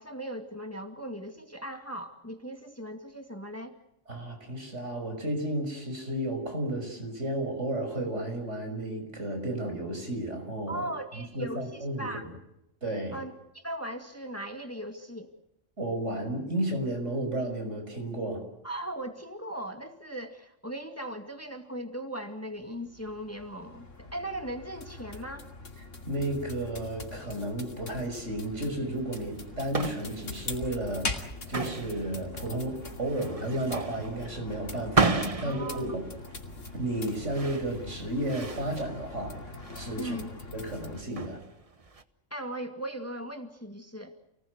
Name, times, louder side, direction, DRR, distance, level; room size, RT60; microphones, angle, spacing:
voice 1, 0.0-3.8 10.7-12.3 13.1-15.3 18.6-25.5 35.4-35.9 40.0-40.3 42.3-44.2, right 1 dB, 10° left, 6 dB, 2.2 m, -38 dB
voice 2, 4.1-10.9 11.2-12.1 12.8-13.2 15.8-18.4 26.1-36.0 36.7-40.1 40.5-41.4, right 1 dB, 70° right, 5 dB, 6.4 m, -33 dB
sound 1, 22.5-41.0, left 3 dB, 85° left, 3.0 m, -42 dB
sound 2, 29.0-42.0, right 3 dB, 30° right, 1.3 m, -34 dB
28.5 x 19.5 x 8.1 m, 0.84 s
omnidirectional pair, 1.3 m